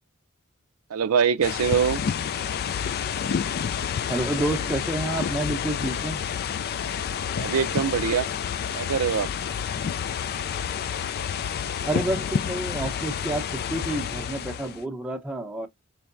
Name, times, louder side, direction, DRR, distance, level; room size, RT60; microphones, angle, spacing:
voice 1, 0.9-2.0 7.4-8.3 8.7-9.3, right 7 dB, 80° right, 0.5 m, -23 dB
sound 1, 1.4-14.8, left 7 dB, 45° left, 0.3 m, -29 dB
voice 2, 4.1-6.2 11.9-15.7, right 1 dB, 5° right, 0.7 m, -29 dB
4.6 x 3.1 x 2.5 m
head